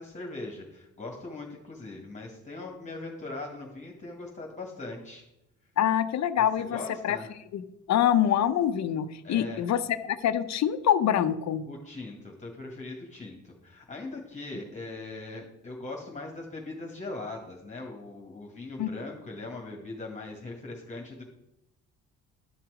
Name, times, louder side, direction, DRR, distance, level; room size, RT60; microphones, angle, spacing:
voice 1, 0.0-5.2 6.6-7.3 9.2-9.6 11.7-21.2, left 2 dB, 25° left, 0 dB, 2.0 m, -40 dB
voice 2, 5.8-6.8 7.0-7.2 7.5-7.6 7.9-11.6 18.8-18.9, left 10 dB, 65° left, 12 dB, 0.7 m, -25 dB
11.5 x 5.9 x 5.0 m, 0.88 s
cardioid pair, 90°, 30 cm